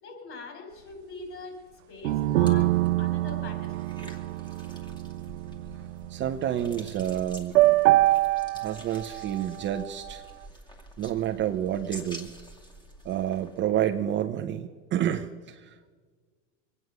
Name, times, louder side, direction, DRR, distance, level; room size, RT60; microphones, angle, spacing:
voice 1, 0.0-4.2, left 3 dB, 35° left, 4 dB, 4.9 m, -43 dB
sound 1, 2.0-6.9 7.5-10.1, right 17 dB, 70° right, 0.7 m, -25 dB
sound 2, 2.1-14.3, right 1 dB, 10° left, 2.3 m, -48 dB
voice 2, 6.1-7.6 8.5-10.2 11.0-12.3 13.0-15.9, right 11 dB, 30° right, 7 dB, 0.8 m, -29 dB
23.0 x 9.6 x 6.6 m, 1.5 s
hypercardioid pair, 115°, 37 cm